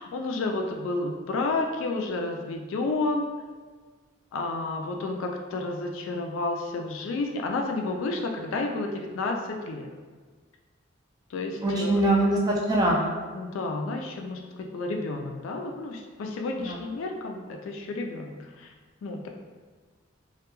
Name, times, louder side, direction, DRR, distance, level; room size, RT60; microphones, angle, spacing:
voice 1, 0.0-3.3 4.3-9.9 11.3-12.0 13.3-18.7 19.0-19.3, left 2 dB, 80° left, 3 dB, 0.3 m, -31 dB
voice 2, 11.6-13.1 16.6-16.8, right 1 dB, 20° right, -3 dB, 0.3 m, -23 dB
2.2 x 2.2 x 2.9 m, 1.5 s
head